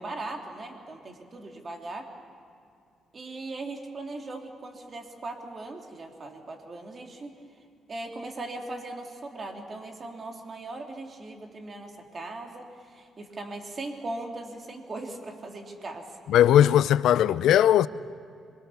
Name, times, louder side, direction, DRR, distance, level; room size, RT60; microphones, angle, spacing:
voice 1, 0.0-2.1 3.1-7.3 7.9-16.1, right 2 dB, 40° right, 3.2 m, -39 dB
voice 2, 16.3-17.9, left 11 dB, 80° left, 0.5 m, -19 dB
26.0 x 23.5 x 7.2 m
cardioid pair, 90°, 0 cm